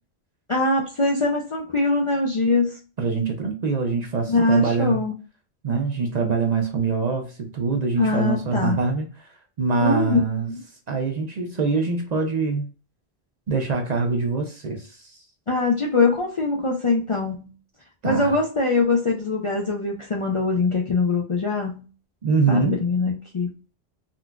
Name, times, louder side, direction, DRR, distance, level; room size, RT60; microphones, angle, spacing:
voice 1, 0.5-2.8 4.3-5.1 8.0-8.8 9.8-10.4 15.5-17.5 18.0-21.8 22.5-23.5, left 3 dB, 45° left, -1 dB, 0.4 m, -22 dB
voice 2, 3.0-5.0 5.6-9.3 9.6-10.5 10.9-12.7 13.5-15.1 18.0-18.4 22.2-22.8, right 4 dB, 50° right, 3 dB, 0.6 m, -24 dB
3.8 x 2.4 x 2.2 m, 0.36 s
omnidirectional pair, 1.1 m